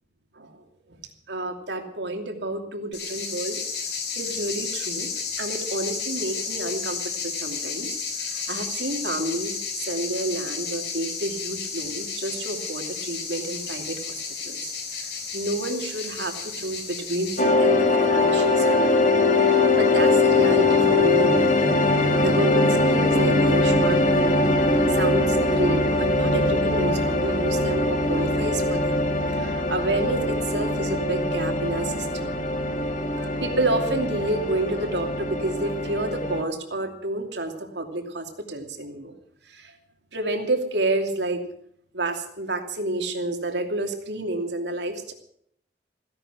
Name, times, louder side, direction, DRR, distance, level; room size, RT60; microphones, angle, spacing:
voice 1, 1.3-3.6 4.2-5.1 5.4-21.7 22.2-24.3 24.9-29.0 29.3-32.4 32.8-39.1 39.4-39.8 40.1-41.4 41.9-45.1, right 2 dB, 75° right, 4 dB, 2.8 m, -30 dB
sound 1, 2.9-17.4, left 5 dB, 70° left, 4.4 m, -32 dB
sound 2, 17.4-36.4, left 2 dB, 45° left, 2.1 m, -22 dB
16.0 x 11.0 x 8.0 m, 0.68 s
head